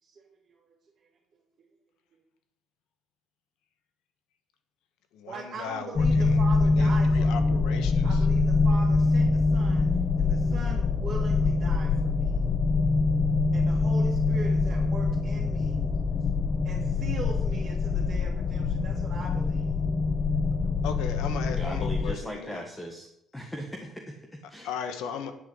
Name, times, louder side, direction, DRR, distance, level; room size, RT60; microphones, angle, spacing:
voice 1, 0.0-0.6 5.3-7.6 8.0-9.9 10.2-12.3 13.5-15.9 16.6-19.7, right 4 dB, 50° right, -4 dB, 2.4 m, -41 dB
voice 2, 5.1-8.3 20.8-22.7 24.6-25.3, left 7 dB, 90° left, 8 dB, 1.3 m, -37 dB
sound 1, 6.0-22.1, left 3 dB, 40° left, 0.7 m, -24 dB
voice 3, 21.6-23.1 23.3-24.7, equal, 10° left, 1 dB, 1.5 m, -38 dB
9.9 x 5.5 x 8.1 m, 0.78 s
cardioid pair, 110°, 0 cm